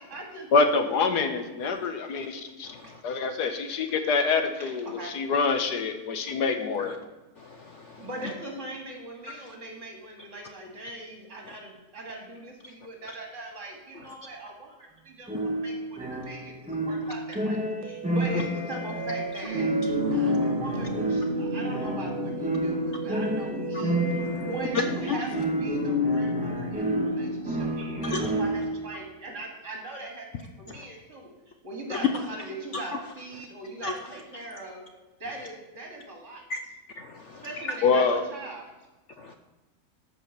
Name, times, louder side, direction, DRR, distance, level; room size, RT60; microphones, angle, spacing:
voice 1, 0.0-0.5 2.8-2.9 4.6-4.7 5.0-5.2 8.0-19.7 20.1-30.3 30.6-31.3 31.6-34.8 35.2-36.4 37.4-38.6, right 2 dB, 50° right, 1 dB, 2.8 m, -40 dB
voice 2, 0.5-2.7 3.0-7.0 37.8-38.2, left 4 dB, 85° left, 7 dB, 1.7 m, -25 dB
voice 3, 2.6-3.0 6.8-7.0 7.4-8.1 20.1-20.3 24.2-24.5 25.1-25.2 28.0-28.3 30.7-30.8 33.8-33.9 36.5-36.6 37.0-37.7, left 3 dB, 55° left, 6 dB, 0.9 m, -36 dB
sound 1, 15.3-28.8, equal, 5° right, 1.3 m, -29 dB
sound 2, 17.8-25.0, right 9 dB, 80° right, 1.3 m, -38 dB
sound 3, 19.4-28.4, left 1 dB, 30° left, 2.0 m, -34 dB
13.0 x 5.4 x 6.8 m, 1.1 s
omnidirectional pair, 1.7 m